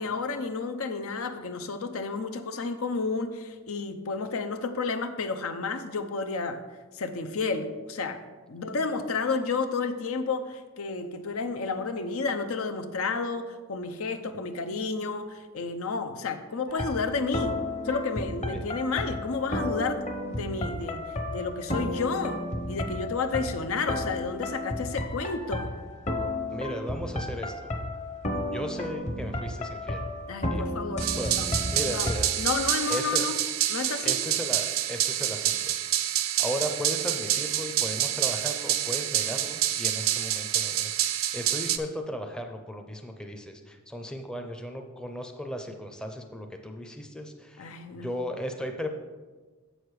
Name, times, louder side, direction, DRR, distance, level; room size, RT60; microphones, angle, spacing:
voice 1, 0.0-6.6 6.9-8.2 8.5-17.6 17.8-20.0 20.3-21.0 21.3-25.7 30.3-31.5 31.8-32.1 32.4-33.4 33.7-34.2 47.6-48.1, left 4 dB, 80° left, 8 dB, 0.6 m, -31 dB
sound 1, 16.7-32.2, left 1 dB, 35° left, 0.9 m, -33 dB
voice 2, 26.5-27.7 28.5-30.0 30.5-30.6 31.2-31.3 31.7-32.3 32.9-33.3 34.0-35.8 36.4-40.9 41.3-48.9, equal, 5° left, 4 dB, 0.5 m, -36 dB
sound 2, 31.0-41.8, right 12 dB, 75° right, 0.5 m, -27 dB
7.5 x 6.5 x 4.8 m, 1.3 s
head